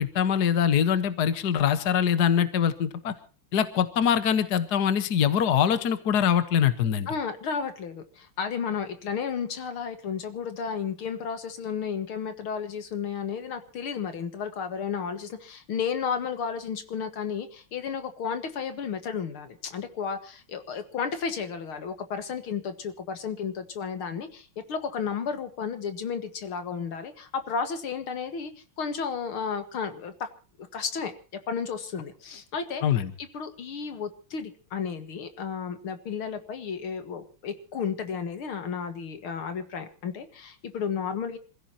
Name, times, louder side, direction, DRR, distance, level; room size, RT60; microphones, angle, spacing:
voice 1, 0.0-3.1 3.5-7.1 32.8-33.1, left 8 dB, 55° left, 12 dB, 1.7 m, -23 dB
voice 2, 7.1-28.5 28.8-30.3 30.6-31.1 31.5-32.8 33.2-41.4, left 6 dB, 80° left, 9 dB, 2.7 m, -33 dB
27.0 x 16.0 x 2.9 m, 0.36 s
omnidirectional pair, 2.3 m